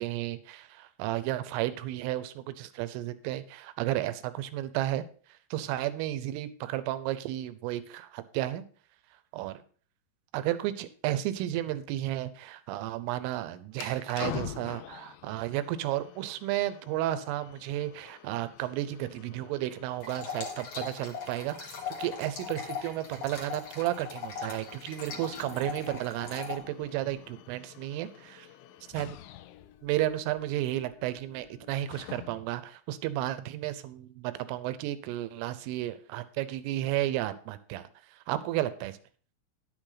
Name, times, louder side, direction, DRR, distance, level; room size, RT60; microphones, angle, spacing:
voice 1, 0.0-5.1 5.5-8.6 9.3-9.6 10.3-28.1 28.9-29.2 29.8-39.0, right 14 dB, 80° right, 13 dB, 3.2 m, -33 dB
sound 1, 13.7-32.6, left 13 dB, 90° left, 2.5 m, -47 dB
sound 2, 20.0-26.6, left 6 dB, 45° left, 2.0 m, -40 dB
Guitar, 25.1-30.6, left 8 dB, 70° left, 3.4 m, -58 dB
10.5 x 9.0 x 3.9 m, 0.41 s
omnidirectional pair, 5.9 m